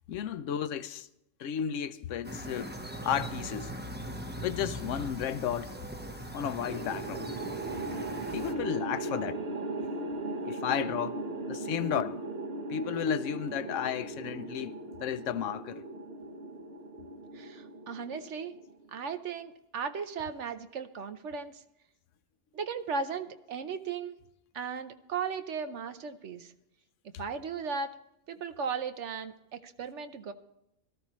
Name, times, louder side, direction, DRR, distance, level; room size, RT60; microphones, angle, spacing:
voice 1, 0.1-1.1 1.4-3.7 4.4-5.8 6.3-7.3 8.3-9.4 10.4-12.2 12.7-15.8, left 9 dB, 75° left, 1.0 m, -33 dB
sound 1, 2.2-8.5, right 1 dB, 10° right, 0.8 m, -40 dB
sound 2, 6.6-19.0, right 2 dB, 55° right, 1.3 m, -38 dB
voice 2, 17.3-18.6 18.9-21.6 22.5-24.2 24.5-26.5 27.2-28.0 28.3-30.3, right 5 dB, 70° right, 1.1 m, -36 dB
18.0 x 13.0 x 3.1 m
omnidirectional pair, 1.3 m